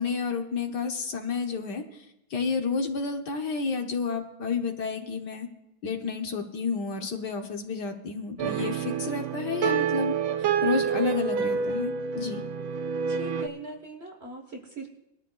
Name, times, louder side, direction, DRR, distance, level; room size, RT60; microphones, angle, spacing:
voice 1, 0.0-1.8 2.3-5.5 5.8-10.1 10.6-12.4, left 5 dB, 60° left, 4 dB, 1.5 m, -30 dB
sound 1, 8.4-13.5, right 7 dB, 85° right, 1.6 m, -28 dB
voice 2, 13.0-14.9, right 2 dB, 35° right, 2 dB, 1.3 m, -41 dB
20.5 x 13.0 x 2.4 m, 0.88 s
omnidirectional pair, 2.2 m